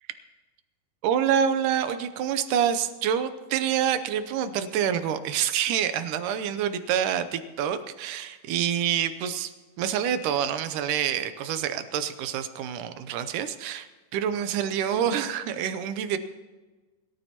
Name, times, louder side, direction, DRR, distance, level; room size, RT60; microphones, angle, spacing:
voice 1, 1.0-9.5 9.8-13.9 14.1-16.2, right 9 dB, 85° right, 11 dB, 2.2 m, -27 dB
22.0 x 13.0 x 2.9 m, 1.3 s
omnidirectional pair, 3.7 m